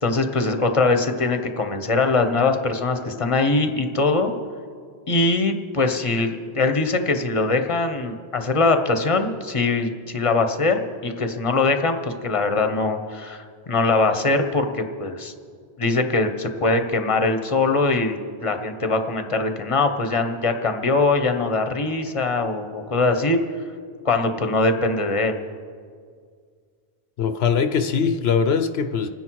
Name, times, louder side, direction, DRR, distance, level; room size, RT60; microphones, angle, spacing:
voice 1, 0.0-4.3 5.1-15.3 15.8-23.4 24.0-25.4, left 3 dB, 30° left, 7 dB, 1.0 m, -22 dB
voice 2, 27.2-29.1, left 6 dB, 75° left, 8 dB, 1.0 m, -21 dB
29.0 x 9.9 x 4.7 m, 2.1 s
omnidirectional pair, 1.1 m